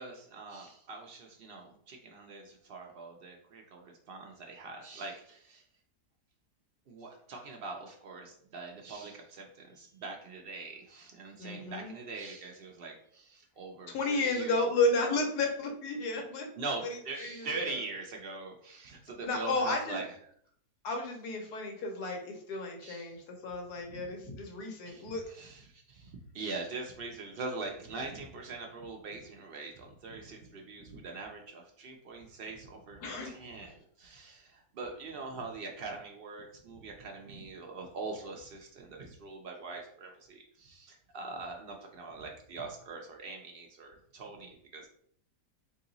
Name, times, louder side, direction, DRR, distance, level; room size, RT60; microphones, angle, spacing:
voice 1, 0.0-5.6 6.9-14.6 16.6-20.1 22.8-23.2 23.9-24.1 24.8-44.9, right 3 dB, 75° right, 1 dB, 0.5 m, -43 dB
voice 2, 11.4-11.9 13.9-16.5 16.8-17.8 19.2-20.0 20.8-25.2 33.0-33.3, left 2 dB, 80° left, 3 dB, 1.3 m, -32 dB
3.0 x 2.8 x 3.8 m, 0.63 s
omnidirectional pair, 1.7 m